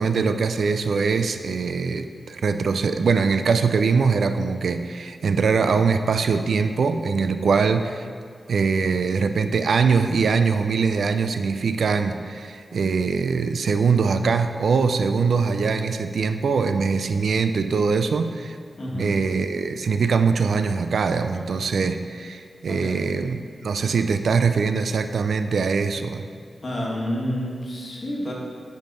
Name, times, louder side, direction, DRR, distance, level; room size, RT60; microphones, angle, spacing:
voice 1, 0.0-8.0 8.5-18.6 19.0-26.2, right 5 dB, 75° right, 9 dB, 0.3 m, -22 dB
voice 2, 18.8-19.2 22.7-23.2 26.6-28.3, equal, 45° left, -3 dB, 1.3 m, -29 dB
9.8 x 3.6 x 3.9 m, 2.1 s
wide cardioid pair, 90°, 0 cm